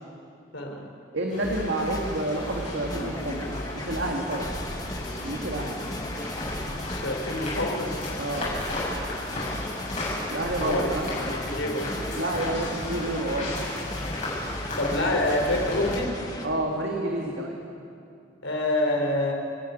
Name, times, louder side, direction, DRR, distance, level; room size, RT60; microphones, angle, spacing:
voice 1, 0.5-0.9 6.9-7.9 10.6-10.9 11.2-11.9 14.8-16.2 18.4-19.3, left 1 dB, 85° left, 2 dB, 3.6 m, -27 dB
voice 2, 1.1-3.5 3.7-4.5 5.2-5.8 8.2-8.6 10.3-11.1 12.1-13.6 16.4-17.5, right 1 dB, 70° right, 0 dB, 2.1 m, -29 dB
sound 1, 1.3-15.9, left 1 dB, 40° left, 7.5 m, -35 dB
sound 2, 1.4-16.5, left 1 dB, 20° left, 1.5 m, -36 dB
29.0 x 10.5 x 9.3 m, 2.5 s
head